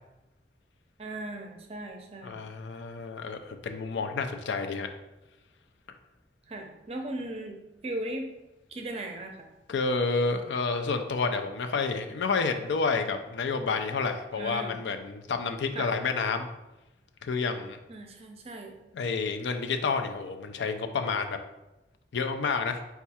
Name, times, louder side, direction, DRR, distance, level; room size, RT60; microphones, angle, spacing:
voice 1, 1.0-2.5 6.5-8.3 8.7-9.5 14.3-14.8 15.7-15.9 17.9-18.7, right 1 dB, 35° right, 3 dB, 0.5 m, -38 dB
voice 2, 2.2-4.9 9.7-16.5 17.2-17.8 18.9-21.4 22.1-22.8, left 4 dB, 80° left, 6 dB, 0.4 m, -29 dB
4.5 x 2.4 x 4.1 m, 0.99 s
head